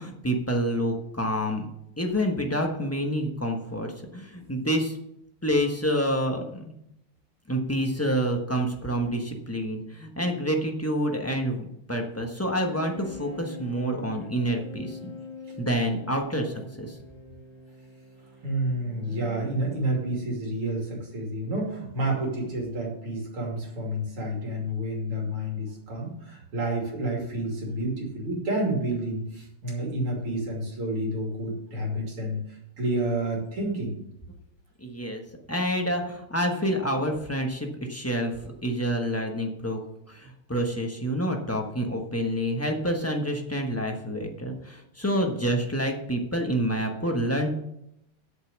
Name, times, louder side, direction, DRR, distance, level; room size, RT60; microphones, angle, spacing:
voice 1, 0.0-1.7 2.0-5.0 5.4-6.7 7.5-15.2 15.6-17.0 34.8-35.2 35.5-39.8 40.1-47.6, equal, 15° left, 2 dB, 0.6 m, -28 dB
sound 1, 12.5-20.1, left 3 dB, 5° right, 4.5 m, -44 dB
voice 2, 18.4-34.0, right 1 dB, 80° right, -1 dB, 3.6 m, -30 dB
8.4 x 6.7 x 7.0 m, 0.80 s
omnidirectional pair, 2.4 m